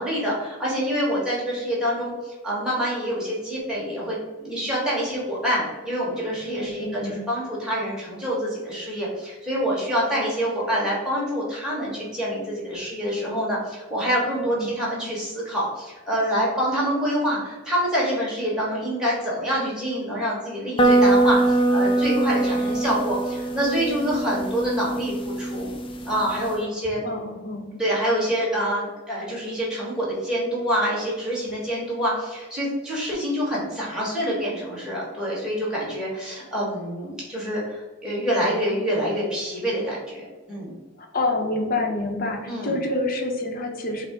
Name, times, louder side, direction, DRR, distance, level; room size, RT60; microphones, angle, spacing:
voice 1, 0.0-2.1 2.4-25.7 26.0-27.0 27.8-40.7 42.5-42.8, equal, 5° right, -6 dB, 1.4 m, -26 dB
voice 2, 6.5-7.2 14.2-14.8 27.0-27.6 41.1-44.1, left 2 dB, 45° left, 2 dB, 0.7 m, -27 dB
sound 1, 20.8-26.5, right 2 dB, 25° left, 0.3 m, -22 dB
5.9 x 2.1 x 3.7 m, 1.2 s
head